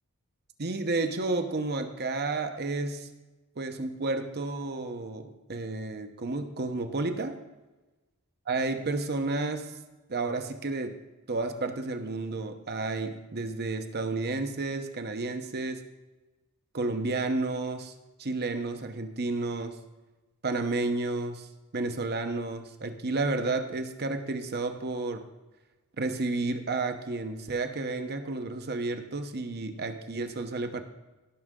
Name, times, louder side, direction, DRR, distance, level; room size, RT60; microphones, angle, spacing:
voice 1, 0.6-3.1 3.6-7.4 8.5-9.7 10.1-11.0 11.3-15.8 16.7-17.9 18.2-19.8 20.4-21.5 21.7-25.3 26.0-30.8, right 3 dB, 45° right, 7 dB, 0.9 m, -31 dB
17.0 x 6.4 x 3.7 m, 1.1 s
head